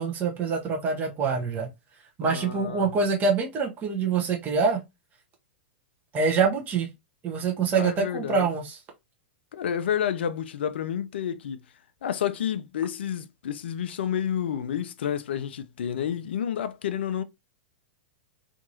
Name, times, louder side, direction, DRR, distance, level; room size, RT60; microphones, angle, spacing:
voice 1, 0.0-1.7 2.2-4.8 6.1-6.9 7.2-8.8, right 5 dB, 30° right, 0.8 m, -25 dB
voice 2, 2.2-2.9 7.7-8.5 9.5-11.6 12.0-17.2, left 9 dB, 70° left, 0.4 m, -30 dB
2.8 x 2.6 x 2.7 m
hypercardioid pair, 100°, 6 cm